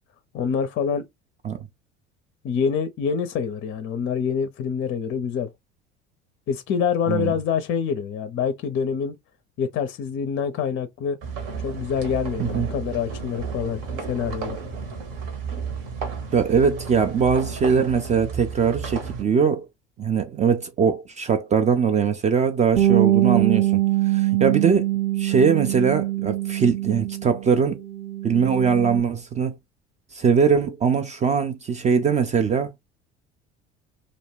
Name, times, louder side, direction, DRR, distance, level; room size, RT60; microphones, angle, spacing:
voice 1, 0.3-1.1 2.4-5.5 6.5-9.2 9.6-11.2 11.6-13.8 14.1-14.6, left 7 dB, 35° left, 0.5 m, -26 dB
sound 1, 11.2-19.2, right 5 dB, 60° right, 1.1 m, -33 dB
voice 2, 16.3-19.7 20.0-24.9 25.2-27.8 28.2-29.5 30.1-32.7, right 6 dB, 20° right, 0.3 m, -21 dB
Bass guitar, 22.8-27.5 27.8-29.0, right 14 dB, 80° right, 0.5 m, -23 dB
2.5 x 2.1 x 3.2 m
figure-of-eight pair, 65°, 35 cm